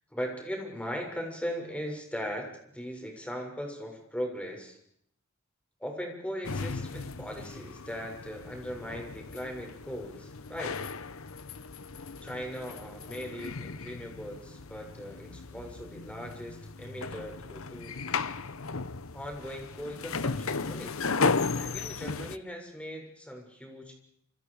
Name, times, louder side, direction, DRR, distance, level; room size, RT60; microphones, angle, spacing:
voice 1, 0.1-2.5 2.7-4.8 5.8-10.7 12.2-18.0 19.1-20.9 21.5-24.0, equal, 5° left, 2 dB, 7.0 m, -39 dB
sound 1, 6.4-22.4, left 4 dB, 85° left, 1.1 m, -35 dB
28.0 x 28.0 x 5.1 m, 0.70 s
head